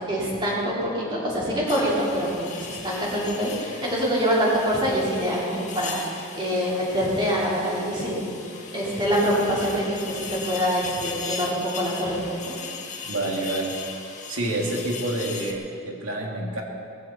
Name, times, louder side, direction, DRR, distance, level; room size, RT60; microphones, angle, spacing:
voice 1, 0.1-12.6, equal, 20° right, -7 dB, 4.5 m, -25 dB
sound 1, 1.7-15.5, left 5 dB, 35° left, 1.7 m, -38 dB
voice 2, 13.1-13.8 14.3-16.6, right 1 dB, 70° right, -1 dB, 2.7 m, -28 dB
19.5 x 15.5 x 4.4 m, 2.4 s
head